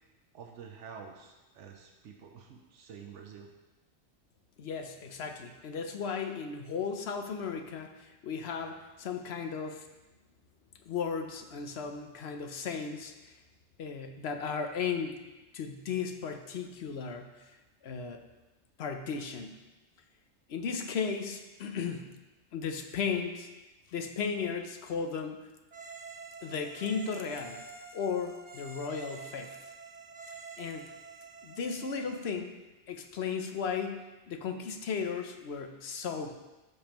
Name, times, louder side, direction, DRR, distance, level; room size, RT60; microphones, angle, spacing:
voice 1, 0.3-3.5, right 6 dB, 90° right, 2 dB, 1.1 m, -48 dB
voice 2, 4.6-9.8 10.9-13.1 13.8-15.2 15.5-17.3 17.8-18.2 18.8-19.5 20.5-22.1 22.5-23.5 23.9-25.4 26.4-27.6 27.9-29.5 30.6-30.9 31.4-32.6 32.9-36.3, left 6 dB, 65° left, 5 dB, 0.9 m, -35 dB
sound 1, 25.7-32.4, right 4 dB, 45° right, 0.6 m, -47 dB
12.0 x 5.2 x 3.0 m, 1.1 s
omnidirectional pair, 1.2 m